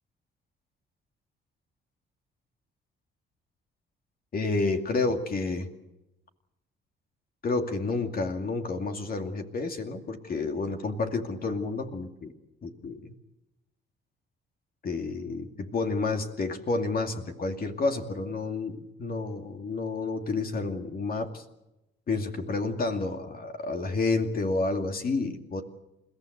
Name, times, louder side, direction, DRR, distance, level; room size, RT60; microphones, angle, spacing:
voice 1, 4.3-5.7 7.4-12.3 12.6-13.1 14.8-21.4 22.1-25.6, left 3 dB, 50° left, 5 dB, 2.4 m, -30 dB
29.0 x 15.0 x 8.1 m, 0.94 s
cardioid pair, 90°, 20 cm